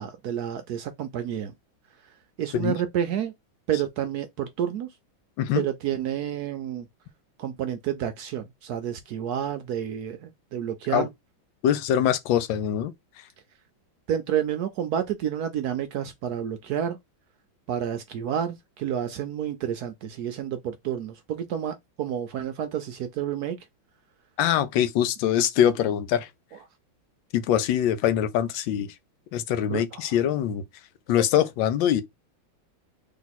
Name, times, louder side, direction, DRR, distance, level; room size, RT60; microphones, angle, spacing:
voice 1, 0.0-1.5 2.4-3.3 3.7-4.9 5.5-6.9 7.4-11.1 14.1-17.0 17.7-23.6 29.7-30.1, right 9 dB, 75° right, 0.9 m, -30 dB
voice 2, 11.6-12.9 24.4-26.3 27.3-28.9 29.3-30.6 31.1-32.0, left 10 dB, 75° left, 1.3 m, -23 dB
3.5 x 2.8 x 4.0 m
omnidirectional pair, 2.2 m